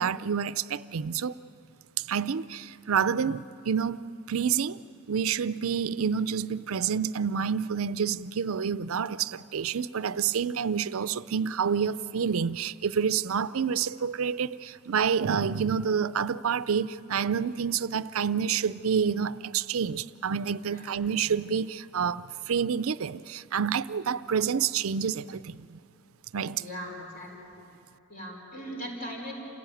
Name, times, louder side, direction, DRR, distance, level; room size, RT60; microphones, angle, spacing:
voice 1, 0.0-1.3 2.0-4.8 5.1-25.8 26.3-26.6, right 7 dB, 75° right, 0.5 m, -28 dB
voice 2, 26.6-27.5 28.1-29.3, equal, 40° left, 5.1 m, -39 dB
27.5 x 17.0 x 9.1 m
head